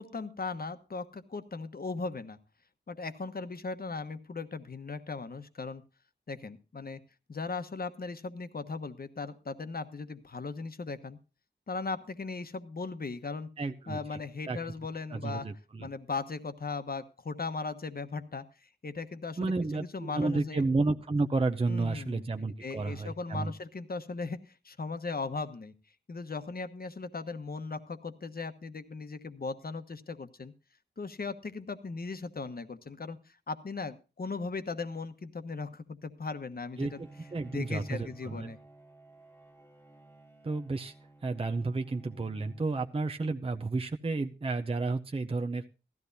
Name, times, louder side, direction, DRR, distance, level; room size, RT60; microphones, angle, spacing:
voice 1, 0.0-2.4 2.9-5.8 6.3-7.0 7.3-11.2 11.7-13.5 13.9-15.5 15.8-20.6 21.7-22.3 22.6-25.7 26.1-30.5 31.0-37.0 37.5-38.6, left 4 dB, 50° left, 9 dB, 1.1 m, -38 dB
voice 2, 13.6-14.2 14.5-14.6 15.1-15.9 19.4-23.5 36.8-38.5 40.4-40.9 41.2-45.6, right 3 dB, 30° right, 5 dB, 0.7 m, -31 dB
Bowed string instrument, 36.8-43.5, right 2 dB, 10° left, 1.4 m, -54 dB
16.5 x 13.5 x 2.7 m, 0.32 s
wide cardioid pair, 70°, 20 cm